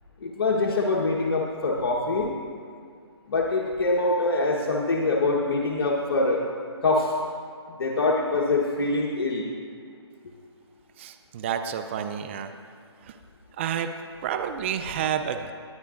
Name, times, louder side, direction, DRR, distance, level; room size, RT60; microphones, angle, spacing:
voice 1, 0.2-2.3 3.3-6.4 6.8-7.1 7.8-9.5, left 2 dB, 60° left, -2 dB, 1.2 m, -24 dB
voice 2, 11.0-12.5 13.1-13.2 13.6-13.9 14.2-15.5, right 8 dB, 25° right, 8 dB, 0.4 m, -29 dB
20.0 x 9.1 x 2.5 m, 2.2 s
hypercardioid pair, 150°, 14 cm